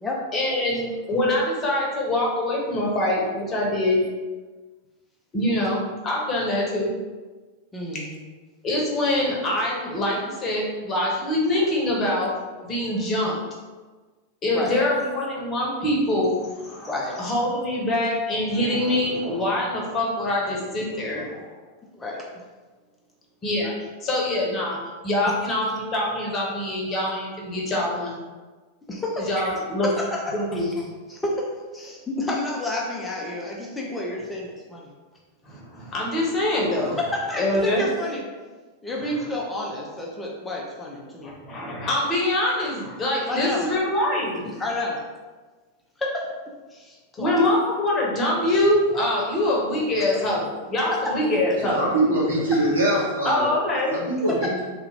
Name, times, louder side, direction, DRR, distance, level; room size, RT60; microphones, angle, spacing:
voice 1, 0.3-4.0 5.3-6.9 8.6-12.4 12.6-13.4 14.4-21.4 23.4-23.7 24.0-24.8 25.0-28.1 29.2-29.9 30.3-30.7 35.5-37.0 37.4-37.9 41.2-44.5 47.2-51.9 53.2-54.0, left 1 dB, 25° left, -3 dB, 0.9 m, -24 dB
voice 2, 7.7-8.1 14.5-14.8 16.9-17.2 21.9-22.2 28.9-34.9 37.0-38.2 38.8-41.3 43.3-43.7 44.5-45.0 46.0-46.3 46.7-47.4 54.3-54.5, left 1 dB, 10° left, -2 dB, 0.5 m, -30 dB
voice 3, 51.6-53.5 53.9-54.6, right 1 dB, 70° right, -7 dB, 1.2 m, -23 dB
3.4 x 2.3 x 3.2 m, 1.3 s
figure-of-eight pair, 90°, 0 cm